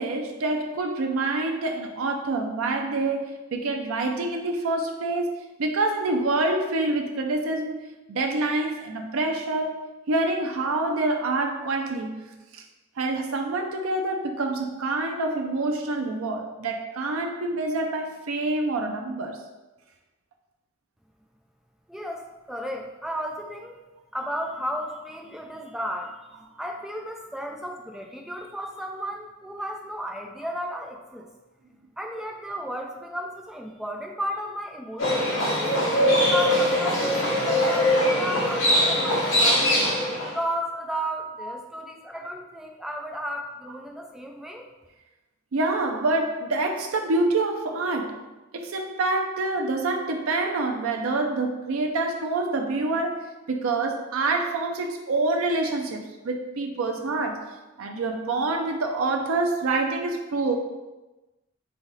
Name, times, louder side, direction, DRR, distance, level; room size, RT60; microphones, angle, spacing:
voice 1, 0.0-12.6 13.0-19.4 41.4-41.6 45.5-48.3 48.5-60.6, right 2 dB, 90° right, 2 dB, 0.5 m, -27 dB
voice 2, 21.9-23.8 24.1-31.3 32.0-35.8 36.3-39.8 40.2-44.7, equal, ahead, 1 dB, 0.4 m, -34 dB
Livestock farm animals working animals, 35.0-40.3, left 1 dB, 70° left, 1.2 m, -22 dB
3.6 x 3.4 x 4.0 m, 1.1 s
head